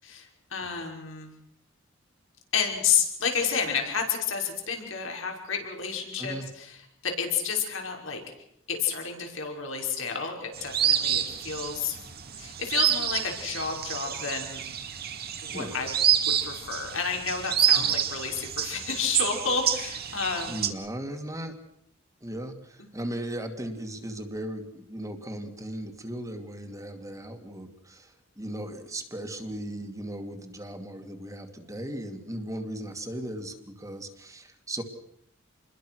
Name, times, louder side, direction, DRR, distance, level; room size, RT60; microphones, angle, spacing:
voice 1, 0.0-1.3 2.5-8.2 8.7-12.0 12.3-14.6 15.4-15.9 16.3-20.7, left 6 dB, 75° left, 2 dB, 6.0 m, -30 dB
sound 1, 10.5-20.7, right 9 dB, 50° right, 2.4 m, -28 dB
voice 2, 20.5-21.5 22.2-34.8, right 1 dB, 15° right, 5 dB, 2.4 m, -37 dB
29.0 x 22.0 x 6.4 m, 0.73 s
head